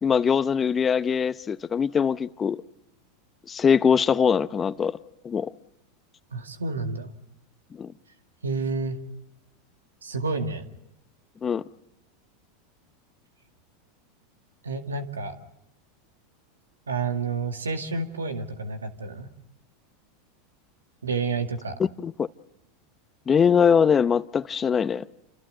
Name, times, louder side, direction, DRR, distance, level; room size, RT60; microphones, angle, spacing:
voice 1, 0.0-2.6 3.5-5.0 5.2-5.5 7.8-7.9 11.4-11.6 21.8-22.3 23.3-25.0, left 7 dB, 25° left, 0.9 m, -22 dB
voice 2, 6.3-7.1 8.4-9.0 10.0-10.6 14.6-15.3 16.9-19.3 21.0-21.7, right 4 dB, 85° right, 2.1 m, -29 dB
29.0 x 27.5 x 4.0 m
hypercardioid pair, 90°, 0 cm